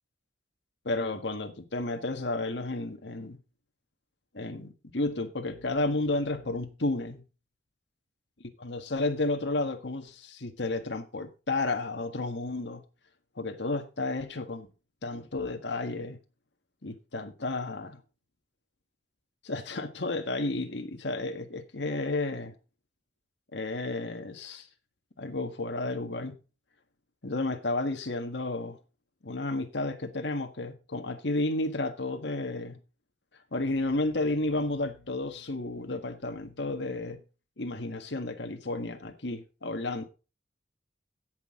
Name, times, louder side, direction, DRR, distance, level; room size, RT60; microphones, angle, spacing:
voice 1, 0.8-3.4 4.3-7.2 8.6-12.8 13.4-14.7 15.0-16.2 16.8-18.0 19.4-22.5 23.5-24.7 25.2-26.4 27.2-28.8 29.2-32.8 33.5-37.2 37.6-40.0, left 2 dB, 70° left, 1.6 m, -32 dB
16.5 x 6.3 x 3.7 m
head